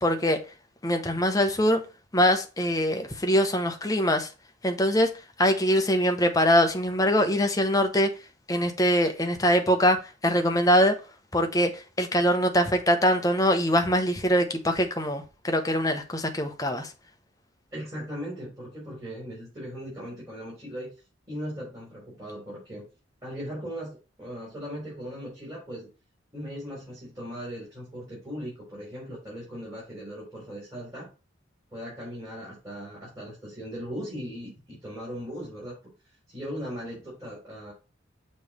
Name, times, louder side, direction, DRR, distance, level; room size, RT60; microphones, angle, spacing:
voice 1, 0.0-0.4 0.8-1.8 2.1-4.3 4.6-5.1 5.4-8.1 8.5-10.0 10.2-10.9 11.3-16.9, equal, 15° left, 0.8 m, -23 dB
voice 2, 17.7-20.9 21.3-22.9 23.2-25.9 26.3-31.1 31.7-35.8 36.3-37.7, equal, 15° right, 3.6 m, -38 dB
6.9 x 3.2 x 5.3 m
head